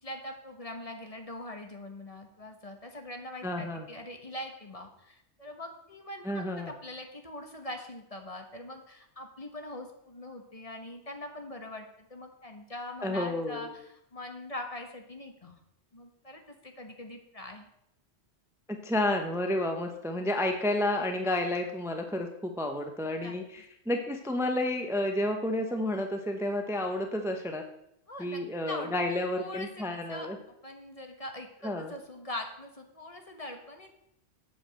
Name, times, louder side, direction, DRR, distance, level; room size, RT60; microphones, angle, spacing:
voice 1, 0.0-15.6 15.9-17.7 23.2-23.4 28.1-30.3 30.6-33.9, left 1 dB, 35° left, 4 dB, 1.2 m, -42 dB
voice 2, 3.4-3.9 6.2-6.7 13.0-13.7 18.7-27.6 28.2-30.4 31.6-31.9, left 1 dB, 5° right, 4 dB, 0.7 m, -31 dB
8.2 x 4.9 x 7.5 m, 0.77 s
omnidirectional pair, 1.1 m